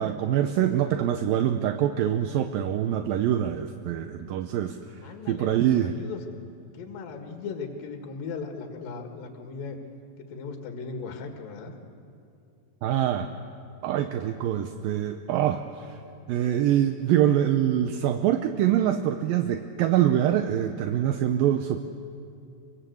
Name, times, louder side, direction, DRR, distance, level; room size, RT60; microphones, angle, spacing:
voice 1, 0.0-4.8 5.0-6.0 12.8-13.3 13.8-16.0 16.3-21.8, right 11 dB, 75° right, 7 dB, 2.4 m, -24 dB
voice 2, 5.0-6.2 6.7-9.8 10.2-11.8, left 5 dB, 65° left, 3 dB, 3.5 m, -38 dB
24.5 x 24.0 x 8.0 m, 2.6 s
omnidirectional pair, 4.6 m